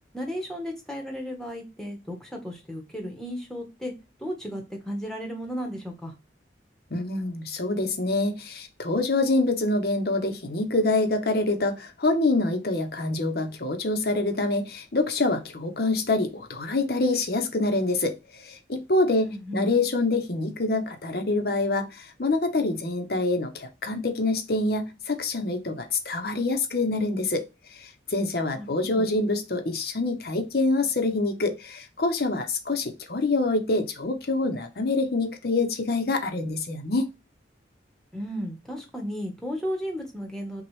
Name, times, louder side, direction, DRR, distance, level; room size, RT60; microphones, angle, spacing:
voice 1, 0.1-3.9 4.2-6.1 19.2-19.7 28.5-28.7 28.9-29.1 38.1-40.6, equal, 5° left, 1.1 m, -34 dB
voice 2, 6.9-27.4 27.7-37.1, left 2 dB, 55° left, 0.8 m, -26 dB
6.0 x 2.4 x 3.1 m
head